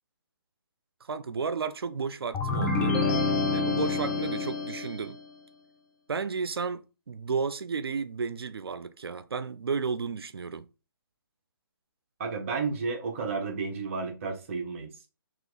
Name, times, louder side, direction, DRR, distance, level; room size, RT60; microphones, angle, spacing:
voice 1, 1.1-3.0 3.5-5.2 6.1-10.7, right 5 dB, 85° right, 0.5 m, -33 dB
sound 1, 2.3-5.1, left 3 dB, 10° left, 0.6 m, -27 dB
voice 2, 12.2-14.9, right 4 dB, 35° right, 1.0 m, -32 dB
3.0 x 2.9 x 4.0 m
hypercardioid pair, 155°, 12 cm